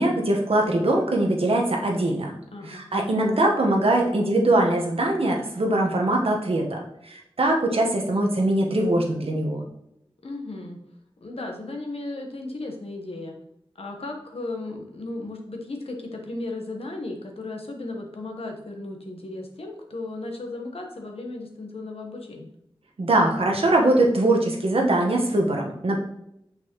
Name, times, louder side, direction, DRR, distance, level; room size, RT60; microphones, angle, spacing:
voice 1, 0.0-2.3 2.7-9.6 23.0-26.0, right 1 dB, 85° right, 1 dB, 1.2 m, -22 dB
voice 2, 2.5-2.8 10.2-10.8 11.2-13.4 13.7-22.5, left 2 dB, 90° left, 2 dB, 1.1 m, -35 dB
6.2 x 5.5 x 3.0 m, 0.78 s
wide cardioid pair, 60°, 10 cm